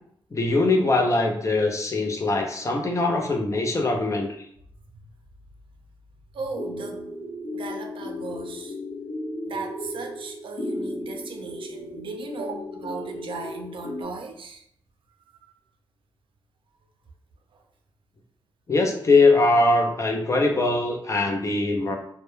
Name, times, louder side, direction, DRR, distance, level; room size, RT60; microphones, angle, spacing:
voice 1, 0.3-4.3 18.7-22.0, left 2 dB, 35° left, 2 dB, 0.5 m, -21 dB
voice 2, 6.3-7.1 7.5-8.8 9.4-14.6 15.4-15.5, right 4 dB, 70° right, 3 dB, 0.4 m, -37 dB
sound 1, 6.5-14.0, left 1 dB, 80° left, 0.8 m, -35 dB
2.2 x 2.1 x 3.0 m, 0.69 s
cardioid pair, 75°, 9 cm